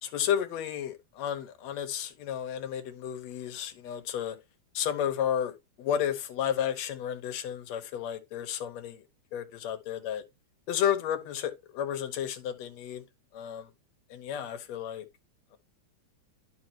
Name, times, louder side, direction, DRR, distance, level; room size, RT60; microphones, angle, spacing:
voice 1, 0.0-4.4 4.7-9.0 9.3-10.2 10.7-13.0 13.3-13.7 14.1-15.1, left 9 dB, 70° left, 2.1 m, -32 dB
11.0 x 4.9 x 2.8 m
omnidirectional pair, 3.3 m